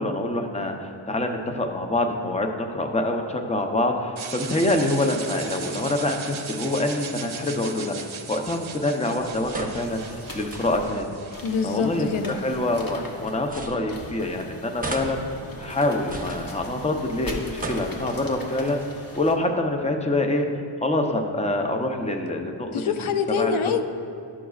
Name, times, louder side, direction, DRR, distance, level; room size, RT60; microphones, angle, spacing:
voice 1, 0.0-8.0 8.3-10.0 10.3-11.2 11.6-15.2 15.6-18.8 19.2-20.5 20.8-22.7 23.4-23.5, left 1 dB, 15° left, 3 dB, 0.6 m, -25 dB
sound 1, 4.2-12.2, right 6 dB, 80° right, 0.7 m, -38 dB
sound 2, 9.2-11.1 12.0-14.4 14.8-17.1 17.4-18.4, right 2 dB, 20° right, 0.8 m, -37 dB
sound 3, 9.8-19.4, left 1 dB, 45° left, 1.0 m, -40 dB
voice 2, 11.4-12.4 22.7-23.8, left 5 dB, 90° left, 8 dB, 0.5 m, -25 dB
12.5 x 6.1 x 2.4 m, 2.4 s
wide cardioid pair, 70°, 48 cm